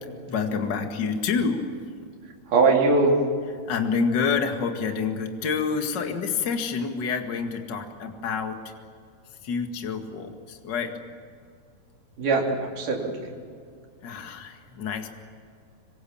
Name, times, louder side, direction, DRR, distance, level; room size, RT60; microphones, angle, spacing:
voice 1, 0.3-1.6 3.7-8.6 9.4-10.9 14.0-15.1, left 5 dB, 35° left, 4 dB, 2.0 m, -28 dB
voice 2, 2.5-3.2 12.2-13.3, right 3 dB, 55° right, -1 dB, 4.8 m, -21 dB
26.0 x 25.0 x 7.3 m, 2.2 s
omnidirectional pair, 4.4 m